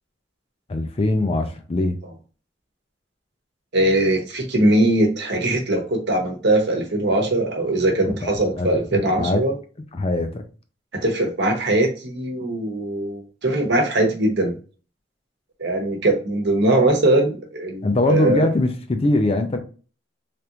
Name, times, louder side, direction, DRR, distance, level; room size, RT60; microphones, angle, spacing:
voice 1, 0.7-2.0 8.0-9.5 9.9-10.4 17.8-19.6, left 2 dB, 30° left, 0.4 m, -22 dB
voice 2, 3.7-9.5 10.9-14.6 15.6-18.5, right 1 dB, 60° right, 1.0 m, -21 dB
3.4 x 2.5 x 2.9 m
head